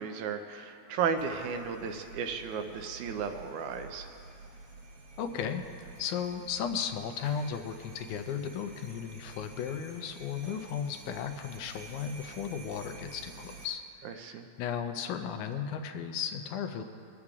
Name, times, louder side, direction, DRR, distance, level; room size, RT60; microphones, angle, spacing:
voice 1, 0.0-4.1 14.0-14.5, right 6 dB, 85° right, 6 dB, 2.1 m, -34 dB
sound 1, 1.2-13.7, right 3 dB, 55° right, 2.0 m, -50 dB
voice 2, 5.2-16.8, left 7 dB, 90° left, 7 dB, 2.1 m, -35 dB
25.5 x 8.6 x 2.4 m, 2.6 s
omnidirectional pair, 3.4 m